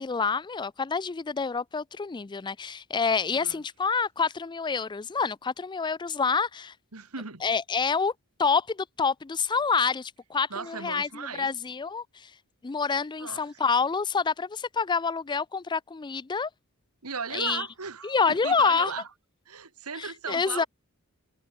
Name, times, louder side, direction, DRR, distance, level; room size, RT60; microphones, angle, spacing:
voice 1, 0.0-6.7 7.4-8.1 8.4-12.3 12.6-16.5 17.3-17.7 18.0-18.9 20.0-20.6, left 5 dB, 20° left, 0.4 m, -27 dB
voice 2, 6.9-7.4 10.5-11.5 13.2-13.6 17.0-19.1 19.5-20.7, right 5 dB, 75° right, 2.2 m, -37 dB
head